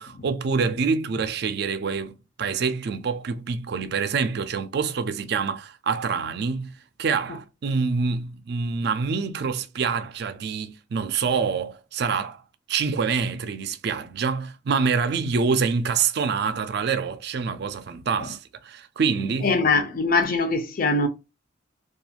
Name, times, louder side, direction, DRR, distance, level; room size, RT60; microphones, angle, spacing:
voice 1, 0.0-12.4 12.7-19.6, right 5 dB, 55° right, 0.4 m, -26 dB
voice 2, 19.4-21.1, left 3 dB, 45° left, 0.5 m, -22 dB
2.4 x 2.3 x 2.7 m
head